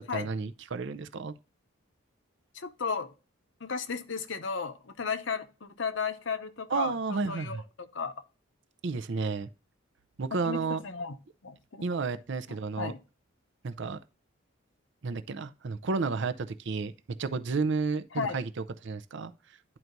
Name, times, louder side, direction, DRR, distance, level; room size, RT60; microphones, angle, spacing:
voice 1, 0.0-1.3 6.7-7.6 8.8-9.5 10.2-10.8 11.8-12.9 13.6-14.0 15.0-16.9 17.2-18.5 18.8-19.3, right 4 dB, 60° right, 0.5 m, -31 dB
voice 2, 2.5-3.1 3.6-7.6 7.9-8.1 10.4-11.2 11.4-11.8 12.5-13.0 18.1-18.4, left 5 dB, 60° left, 0.8 m, -34 dB
11.0 x 4.5 x 2.6 m
head